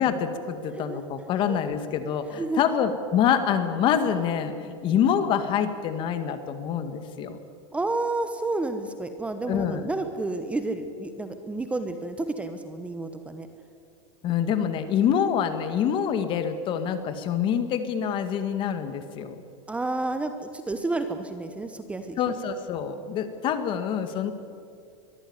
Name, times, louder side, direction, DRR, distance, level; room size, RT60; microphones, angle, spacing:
voice 1, 0.0-7.4 9.5-9.9 14.2-19.4 22.2-24.3, left 8 dB, 35° left, 10 dB, 1.8 m, -26 dB
voice 2, 7.7-13.5 19.7-22.2, right 2 dB, 10° right, 8 dB, 1.0 m, -30 dB
23.0 x 14.0 x 9.6 m, 2.5 s
supercardioid pair, 150°, 15 cm